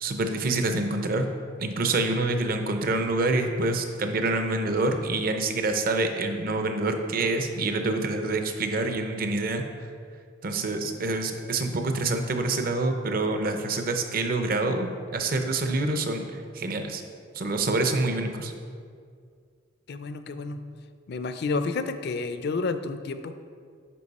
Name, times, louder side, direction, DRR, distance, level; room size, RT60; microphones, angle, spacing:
voice 1, 0.0-1.3 1.6-9.6 10.4-16.2 16.5-17.0 17.3-18.5, right 2 dB, 50° right, 6 dB, 0.6 m, -26 dB
voice 2, 19.9-20.6 21.1-23.3, left 3 dB, 55° left, 10 dB, 0.4 m, -30 dB
10.0 x 4.7 x 4.1 m, 2.2 s
head